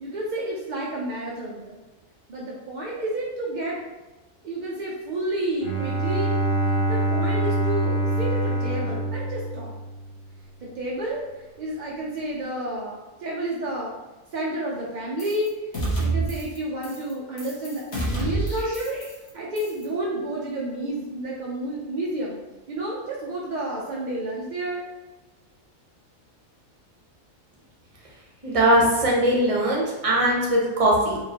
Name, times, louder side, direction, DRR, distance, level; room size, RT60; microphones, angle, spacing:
voice 1, 0.0-1.8 2.3-3.8 4.4-6.4 6.7-9.7 10.6-14.0 14.3-15.5 16.0-19.0 19.3-22.4 22.7-24.8, right 1 dB, 60° right, -4 dB, 0.5 m, -30 dB
Bowed string instrument, 5.6-10.3, right 2 dB, 10° left, 1.3 m, -25 dB
sound 1, 15.2-15.5 15.7-16.6 16.8-17.1 17.4-19.3 19.6-19.8, right 2 dB, 55° left, 1.3 m, -28 dB
voice 2, 28.4-31.2, right 1 dB, 30° right, -3 dB, 0.8 m, -20 dB
4.6 x 2.9 x 2.8 m, 1.2 s
omnidirectional pair, 1.5 m